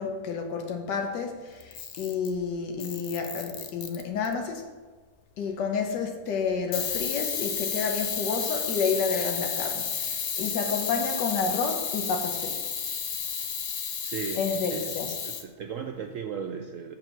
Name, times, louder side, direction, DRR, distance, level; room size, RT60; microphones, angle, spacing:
voice 1, 0.0-4.6 5.4-12.6 14.4-15.1, left 5 dB, 85° left, 3 dB, 1.5 m, -30 dB
Camera, 1.6-2.4 2.8-4.3 6.7-15.4, left 7 dB, 60° left, 0.6 m, -32 dB
voice 2, 14.0-14.9 15.2-17.0, right 7 dB, 70° right, 5 dB, 0.8 m, -36 dB
7.0 x 5.5 x 5.7 m, 1.4 s
omnidirectional pair, 1.8 m